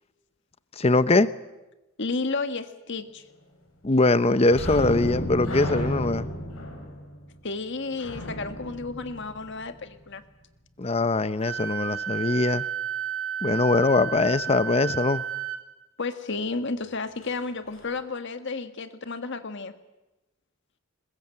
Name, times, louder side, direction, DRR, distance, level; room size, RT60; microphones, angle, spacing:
voice 1, 0.8-1.3 3.8-6.3 10.8-12.6 13.4-15.2, left 2 dB, 30° left, 15 dB, 0.8 m, -22 dB
voice 2, 2.0-3.2 7.4-10.2 16.0-19.7, left 3 dB, 60° left, 9 dB, 1.6 m, -32 dB
sound 1, 4.5-9.9 17.2-17.4 17.7-17.9, equal, 90° left, 5.4 m, -32 dB
Wind instrument woodwind instrument, 11.4-15.6, right 9 dB, 80° right, 3.2 m, -32 dB
21.5 x 21.0 x 7.7 m, 1.0 s
head